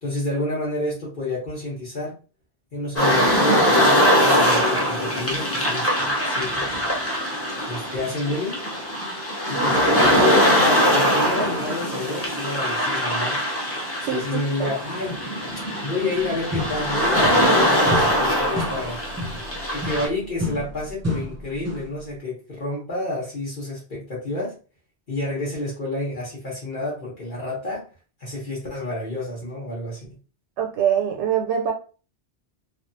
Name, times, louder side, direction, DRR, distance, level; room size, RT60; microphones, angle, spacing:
voice 1, 0.0-2.1 2.7-6.6 7.7-8.6 9.5-13.4 14.1-15.2 15.8-19.1 19.7-24.5 25.1-27.8 28.2-30.1, left 2 dB, 50° left, -6 dB, 1.2 m, -29 dB
sound 1, 3.0-20.1, equal, 15° left, 0.9 m, -21 dB
voice 2, 14.0-14.7 30.6-31.7, right 9 dB, 85° right, 2 dB, 0.9 m, -24 dB
sound 2, 16.5-17.6 17.9-22.0, left 1 dB, 20° right, 0.6 m, -31 dB
3.3 x 2.3 x 2.6 m, 0.36 s
omnidirectional pair, 1.1 m